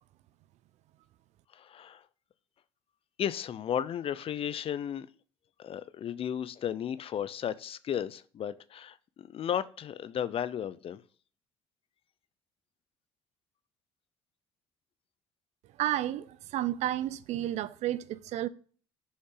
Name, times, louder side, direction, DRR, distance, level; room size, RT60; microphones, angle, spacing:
voice 1, 1.5-2.0 3.2-5.1 5.6-11.0, left 9 dB, 50° left, 0.6 m, -34 dB
voice 2, 15.8-18.5, right 13 dB, 65° right, 0.5 m, -31 dB
6.7 x 5.3 x 3.8 m
supercardioid pair, 65°, 12 cm